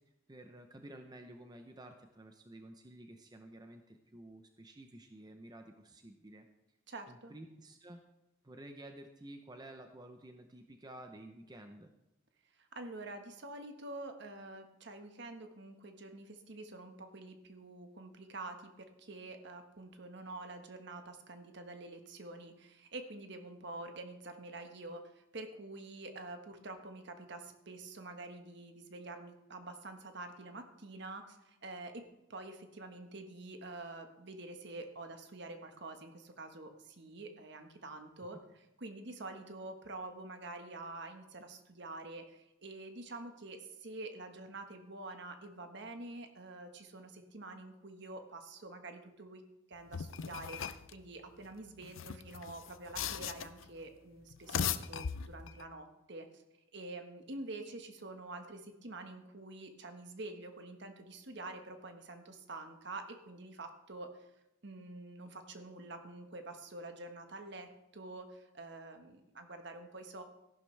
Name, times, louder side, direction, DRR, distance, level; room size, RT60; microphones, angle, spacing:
voice 1, 0.3-6.5 7.1-8.0 8.4-11.9, right 1 dB, 20° right, 5 dB, 0.7 m, -52 dB
voice 2, 6.9-7.3 12.6-32.0 32.3-49.4 49.7-56.4 56.7-64.3 64.6-70.2, right 2 dB, 60° right, 6 dB, 1.4 m, -47 dB
sound 1, 49.9-50.9 51.8-53.7 54.3-55.6, left 7 dB, 80° left, 0.5 m, -38 dB
14.5 x 11.5 x 3.3 m, 0.93 s
head